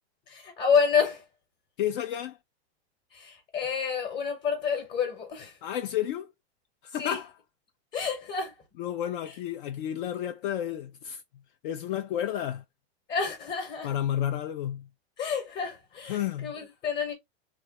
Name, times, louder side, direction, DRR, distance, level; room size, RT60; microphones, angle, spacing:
voice 1, 0.3-1.2 3.1-5.6 7.0-7.2 7.9-8.5 13.1-13.9 15.2-17.1, left 6 dB, 25° left, 1.0 m, -29 dB
voice 2, 1.8-2.4 5.6-6.3 6.8-7.3 8.8-11.2 11.6-12.6 13.8-14.9 16.1-16.5, left 11 dB, 50° left, 0.4 m, -31 dB
3.1 x 2.3 x 2.9 m
supercardioid pair, 140°, 33 cm